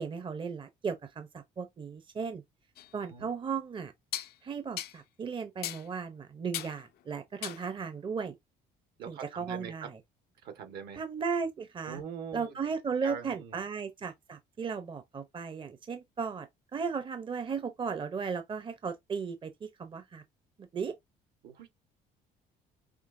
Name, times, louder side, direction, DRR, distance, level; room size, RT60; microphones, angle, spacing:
voice 1, 0.0-2.4 2.9-3.9 4.4-8.3 9.1-9.9 11.0-12.0 12.3-20.2 20.6-20.9, right 5 dB, 30° right, 0.8 m, -36 dB
sound 1, 2.8-2.9 4.1-4.3 4.8-5.0 5.6-5.9 6.5-6.8 7.4-7.7, left 13 dB, 70° left, 0.6 m, -37 dB
voice 2, 9.0-9.9 10.4-11.0 11.8-12.5 13.0-13.7 21.4-21.7, right 7 dB, 75° right, 1.7 m, -42 dB
6.0 x 2.9 x 2.7 m
cardioid pair, 110°, 17 cm